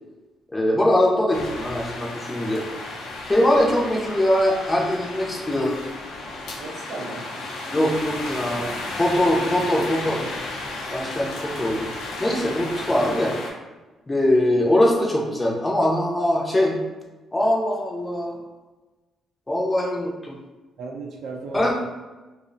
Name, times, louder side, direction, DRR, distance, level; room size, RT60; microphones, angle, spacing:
voice 1, 0.5-2.6 3.2-5.7 7.7-10.2 10.9-11.9 12.2-13.4 14.1-16.8 17.3-18.4 19.5-20.4 21.5-21.7, left 1 dB, 20° left, -2 dB, 0.4 m, -22 dB
sound 1, 1.3-13.5, left 2 dB, 90° left, 0.4 m, -34 dB
voice 2, 6.6-7.3 20.8-21.7, right 3 dB, 65° right, 0 dB, 0.5 m, -35 dB
2.5 x 2.0 x 2.5 m, 1.2 s
cardioid pair, 90°, 0 cm